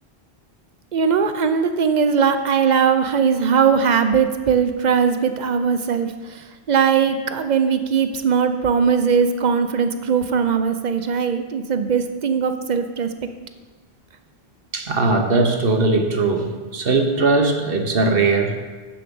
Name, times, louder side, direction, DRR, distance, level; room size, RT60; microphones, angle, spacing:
voice 1, 0.9-13.1, right 6 dB, 50° right, 9 dB, 0.7 m, -20 dB
voice 2, 14.7-18.5, right 3 dB, 65° right, 4 dB, 1.2 m, -19 dB
7.3 x 7.1 x 6.9 m, 1.3 s
omnidirectional pair, 1.0 m